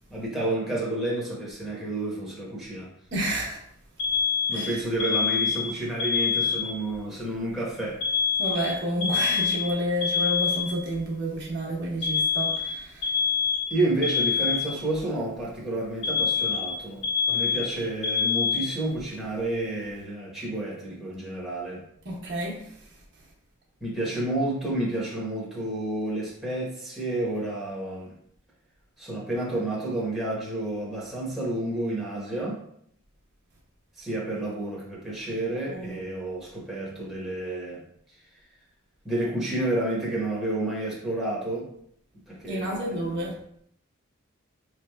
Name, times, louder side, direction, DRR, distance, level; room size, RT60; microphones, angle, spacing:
voice 1, 0.1-2.9 4.5-8.0 13.7-21.8 23.8-28.1 29.0-32.6 34.0-37.8 39.0-41.7 42.3-43.3, right 1 dB, ahead, -7 dB, 1.1 m, -30 dB
voice 2, 3.1-3.6 4.5-4.8 8.4-13.2 22.0-22.9 35.7-36.0 42.5-43.3, equal, 55° right, -4 dB, 1.0 m, -30 dB
Alarm, 4.0-7.0 8.0-11.0 12.0-15.0 16.0-19.0, left 6 dB, 50° left, 1.3 m, -26 dB
4.8 x 3.3 x 2.3 m, 0.68 s
head